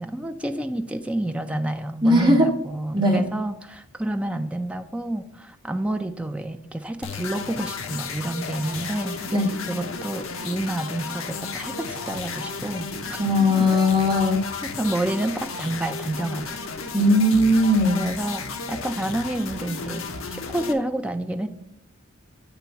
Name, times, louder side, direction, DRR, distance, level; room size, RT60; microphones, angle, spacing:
voice 1, 0.0-9.2 9.7-13.2 14.6-16.5 18.0-21.5, right 1 dB, 5° right, 6 dB, 0.4 m, -29 dB
voice 2, 2.0-2.5 2.9-3.2 9.3-9.5 13.2-14.4 16.9-18.0, left 1 dB, 20° right, -2 dB, 1.3 m, -18 dB
sound 1, 7.0-20.7, left 4 dB, 75° left, 0.7 m, -33 dB
9.0 x 3.0 x 5.6 m, 0.79 s
head